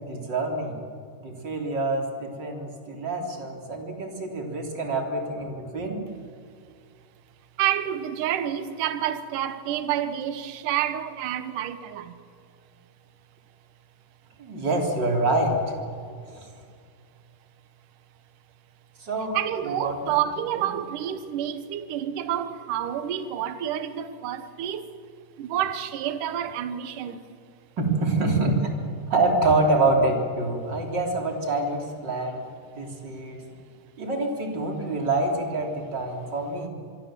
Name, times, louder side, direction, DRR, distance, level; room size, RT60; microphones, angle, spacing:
voice 1, 0.1-0.8 1.2-6.0 14.4-15.7 16.3-16.5 19.0-19.4 19.6-20.0 20.6-20.7 27.8-28.7 29.1-32.4 32.7-33.4 34.0-36.7, right 2 dB, 25° right, 3.2 m, -26 dB
voice 2, 7.6-12.2 19.3-25.0 25.4-27.2, right 10 dB, 70° right, 2.1 m, -29 dB
26.5 x 23.0 x 7.6 m
omnidirectional pair, 5.2 m